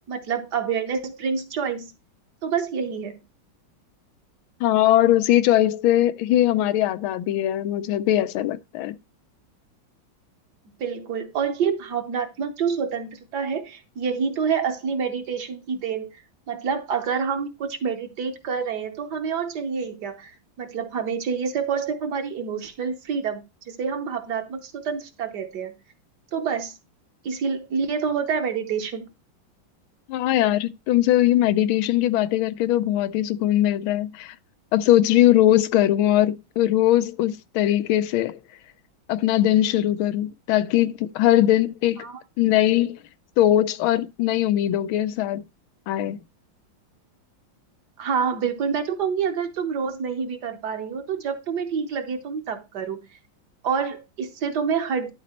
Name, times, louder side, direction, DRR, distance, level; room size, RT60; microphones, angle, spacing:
voice 1, 0.1-1.9 2.4-3.1 10.8-16.1 16.5-20.3 20.6-25.7 26.3-26.7 27.2-29.1 42.0-42.2 48.0-53.0 53.6-55.1, right 6 dB, 60° right, 1.5 m, -27 dB
voice 2, 4.6-9.0 30.1-34.3 34.7-38.4 39.1-42.0 42.4-43.0 43.4-45.4 45.9-46.2, left 13 dB, 90° left, 1.5 m, -20 dB
11.5 x 4.0 x 4.3 m
omnidirectional pair, 2.2 m